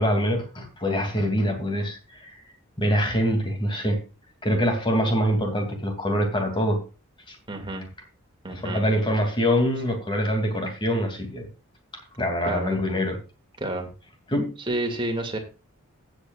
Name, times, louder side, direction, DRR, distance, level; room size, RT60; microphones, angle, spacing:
voice 1, 0.0-2.4 2.8-4.0 4.4-6.8 7.3-7.4 8.5-11.5 12.2-13.2 14.3-14.5, equal, 25° left, 4 dB, 2.5 m, -24 dB
voice 2, 7.5-7.9 8.4-8.8 12.5-12.8 13.6-13.9 14.7-15.4, right 1 dB, 25° right, 3 dB, 2.2 m, -29 dB
17.0 x 8.2 x 2.4 m, 0.32 s
head